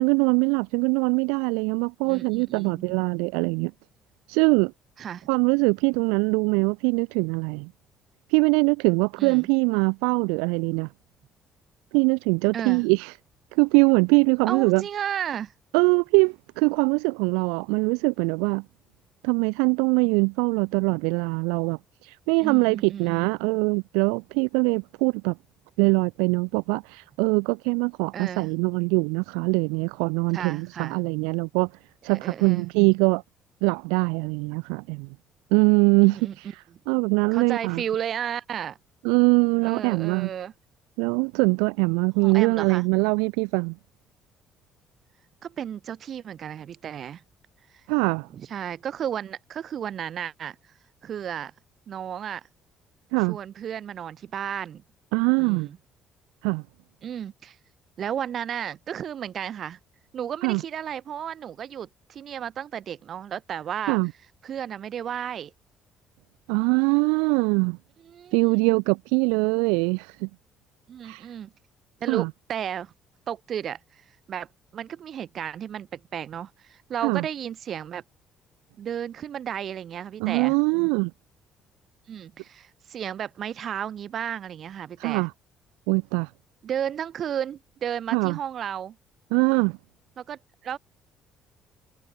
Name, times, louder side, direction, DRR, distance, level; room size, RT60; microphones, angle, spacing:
voice 1, 0.0-3.7 4.3-4.7 5.3-7.7 8.3-10.9 11.9-13.1 13.5-14.8 15.7-18.6 19.2-25.4 25.8-31.7 32.0-33.2 33.6-35.1 35.5-36.2 36.9-37.8 39.0-40.3 41.0-43.7 47.9-48.3 53.1-53.4 55.1-55.7 56.4-56.6 60.4-60.6 63.9-64.1 66.5-67.8 68.3-70.3 71.0-71.3 72.1-72.3 77.0-77.2 80.2-81.1 85.0-85.3 85.9-86.3 88.1-88.4 89.3-89.8, right 36 dB, 90° right, 1.3 m, -22 dB
voice 2, 2.0-3.0 5.0-5.3 9.2-9.5 12.5-12.8 14.4-15.5 22.4-23.3 28.1-28.5 30.3-31.0 32.1-32.7 36.0-36.4 37.3-38.8 39.6-40.5 42.2-42.9 45.4-47.2 48.3-50.6 51.0-51.5 51.9-52.5 53.3-54.8 55.4-55.8 57.0-57.6 58.0-59.8 60.1-64.0 64.4-65.5 68.0-68.4 70.9-71.5 72.0-72.9 73.3-73.8 74.3-74.5 74.7-78.0 78.8-80.5 82.1-85.3 86.6-89.0 90.2-90.8, right 9 dB, 55° right, 3.9 m, -33 dB
supercardioid pair, 70°, 0 cm